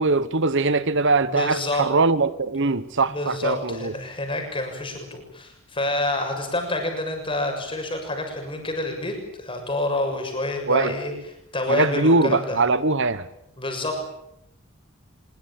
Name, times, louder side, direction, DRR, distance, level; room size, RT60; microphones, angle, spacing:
voice 1, 0.0-3.9 10.7-10.9 11.7-13.3, right 3 dB, 55° right, 1.1 m, -21 dB
voice 2, 1.3-1.9 3.1-11.1 11.5-12.6 13.6-14.0, left 2 dB, 25° left, 7.0 m, -28 dB
24.5 x 23.0 x 8.8 m
head